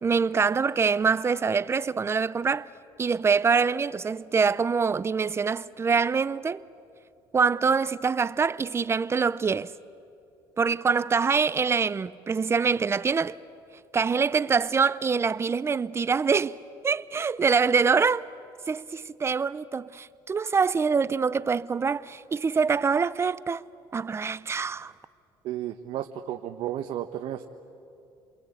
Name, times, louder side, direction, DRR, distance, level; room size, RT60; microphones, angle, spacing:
voice 1, 0.0-2.7 3.0-6.6 7.3-9.7 10.6-13.3 13.9-16.6 16.8-18.2 18.7-23.6 23.9-24.9, right 5 dB, 25° right, 0.6 m, -25 dB
voice 2, 25.4-27.4, right 12 dB, 65° right, 1.1 m, -33 dB
29.5 x 22.5 x 8.6 m
supercardioid pair, 90°, 10 cm